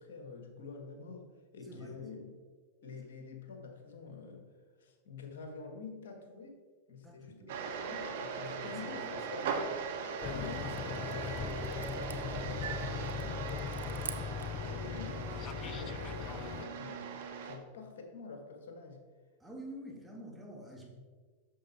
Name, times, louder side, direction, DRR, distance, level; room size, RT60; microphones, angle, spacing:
voice 1, 0.0-2.2 2.8-4.5 4.8-6.6 6.9-9.5 10.1-11.9 12.2-19.0, left 4 dB, 70° left, 4 dB, 1.7 m, -48 dB
voice 2, 1.6-2.0 7.0-7.6 8.4-9.1 9.4-9.5 15.7-15.8 19.4-20.9, right 1 dB, 5° right, -1 dB, 2.2 m, -48 dB
sound 1, 7.5-17.6, right 5 dB, 65° right, 1.1 m, -39 dB
sound 2, 10.0-14.7, right 7 dB, 85° right, 0.5 m, -50 dB
sound 3, 10.2-16.7, left 8 dB, 35° left, 0.4 m, -40 dB
8.5 x 6.6 x 4.3 m, 1.5 s
hypercardioid pair, 105°, 0 cm